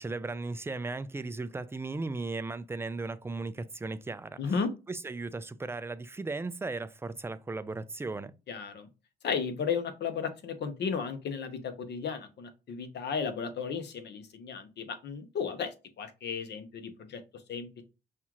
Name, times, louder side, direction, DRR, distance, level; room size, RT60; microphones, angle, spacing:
voice 1, 0.0-4.6 4.9-8.3, right 3 dB, 10° right, 0.3 m, -36 dB
voice 2, 4.4-4.7 8.5-8.9 9.2-17.2 17.5-17.8, left 6 dB, 60° left, 0.9 m, -34 dB
5.4 x 2.4 x 3.0 m
cardioid pair, 90°, 20 cm